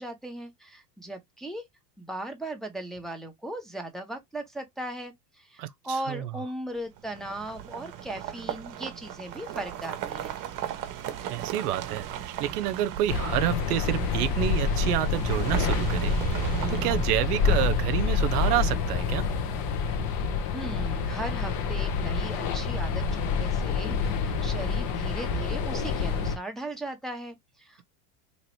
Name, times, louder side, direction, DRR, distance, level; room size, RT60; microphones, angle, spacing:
voice 1, 0.0-1.6 2.0-10.4 20.5-27.8, right 1 dB, ahead, 0.7 m, -38 dB
sound 1, 7.0-17.8, right 10 dB, 40° right, 0.8 m, -36 dB
voice 2, 11.3-19.2, right 13 dB, 70° right, 0.6 m, -29 dB
sound 2, 13.1-26.4, left 5 dB, 45° left, 0.9 m, -27 dB
3.0 x 2.9 x 3.0 m
hypercardioid pair, 100°, 48 cm